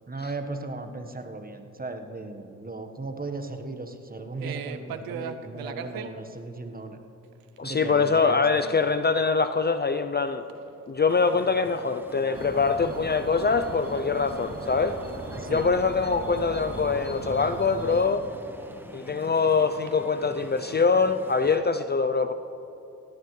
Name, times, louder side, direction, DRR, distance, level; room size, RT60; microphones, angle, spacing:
voice 1, 0.1-7.0 7.6-8.8 15.3-15.7, right 2 dB, 25° right, 6 dB, 1.4 m, -37 dB
sound 1, 4.4-6.1 7.2-7.6 7.9-8.1 8.6-8.7 9.1-9.2 9.5-10.2 10.5-11.8 12.1-15.5 15.8-19.2 19.6-21.6, right 8 dB, 85° right, 0.7 m, -43 dB
voice 2, 7.6-10.4 10.9-15.0 15.5-18.2 18.9-22.3, left 4 dB, 30° left, 9 dB, 0.6 m, -24 dB
sound 2, 11.1-21.6, equal, 5° right, 1.4 m, -45 dB
sound 3, 12.3-18.0, right 2 dB, 40° right, 2.8 m, -38 dB
17.5 x 15.5 x 3.3 m, 3.0 s
supercardioid pair, 50°, 34 cm